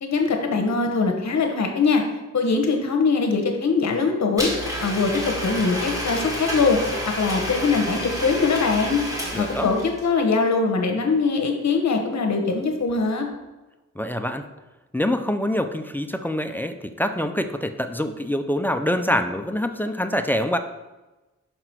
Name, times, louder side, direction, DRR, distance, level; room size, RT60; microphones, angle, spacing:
voice 1, 0.0-2.0 2.3-4.5 4.8-6.8 7.2-9.0 9.4-13.3, left 4 dB, 65° left, 4 dB, 1.0 m, -22 dB
Domestic sounds home sounds, 4.4-10.0, equal, 10° right, 1.6 m, -29 dB
voice 2, 9.3-9.7 14.0-14.5 14.9-20.6, left 1 dB, 5° left, 7 dB, 0.3 m, -25 dB
5.9 x 5.6 x 4.4 m, 1.1 s
wide cardioid pair, 180°, 30 cm